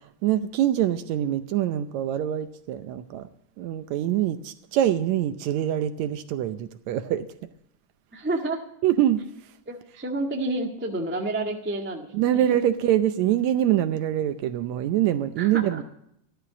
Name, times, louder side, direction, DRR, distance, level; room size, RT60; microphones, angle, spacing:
voice 1, 0.2-3.3 3.6-7.3 8.8-9.2 12.1-15.8, right 11 dB, 75° right, 1.8 m, -24 dB
voice 2, 8.1-8.6 9.7-12.1 12.5-12.6 15.4-15.8, right 2 dB, 15° right, 0.3 m, -29 dB
13.0 x 12.5 x 5.9 m
omnidirectional pair, 3.7 m